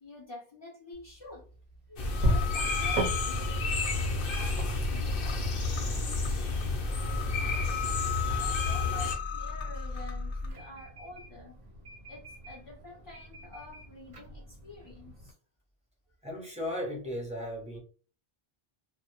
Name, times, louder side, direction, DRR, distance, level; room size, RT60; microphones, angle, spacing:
voice 1, 0.0-1.5 1.9-4.5 4.8-11.6 12.1-15.3, left 2 dB, 30° left, 0.5 m, -49 dB
sound 1, 0.9-15.3, equal, 45° right, 0.7 m, -39 dB
sound 2, 2.0-10.5, left 4 dB, 90° left, 0.9 m, -35 dB
sound 3, 2.0-9.1, left 3 dB, 65° left, 0.8 m, -31 dB
voice 2, 16.2-17.8, equal, 10° right, 0.6 m, -36 dB
2.1 x 2.0 x 2.8 m
omnidirectional pair, 1.1 m